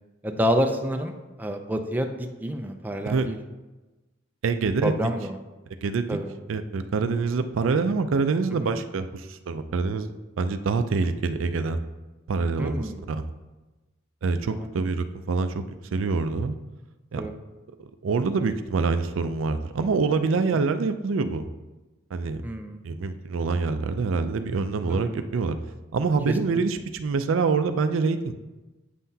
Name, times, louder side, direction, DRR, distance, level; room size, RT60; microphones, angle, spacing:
voice 1, 0.2-1.1 1.4-3.4 4.8-5.4 6.1-6.3 8.6-8.8 12.6-13.0 14.6-14.7 17.2-17.3 20.5-20.6 22.4-22.8 24.9-25.1 26.3-26.4, equal, 10° right, 4 dB, 0.4 m, -28 dB
voice 2, 4.4-4.9 5.8-6.2 6.5-10.1 10.4-11.8 12.3-13.3 14.2-15.7 15.9-16.6 17.1-17.3 17.8-21.4 22.1-22.4 22.8-25.6 25.9-28.3, right 4 dB, 75° right, 10 dB, 0.4 m, -25 dB
8.3 x 5.7 x 2.7 m, 1.1 s
head